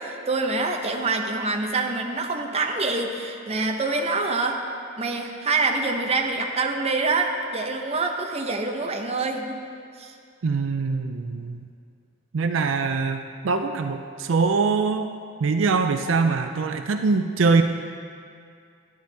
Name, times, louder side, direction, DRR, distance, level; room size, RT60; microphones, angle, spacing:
voice 1, 0.0-4.6 5.0-9.6 10.0-10.1, right 3 dB, 35° right, 3 dB, 0.8 m, -26 dB
voice 2, 10.4-11.6 12.3-15.1 15.4-17.6, right 4 dB, 80° right, 7 dB, 0.5 m, -23 dB
12.0 x 10.0 x 3.5 m, 2.3 s
head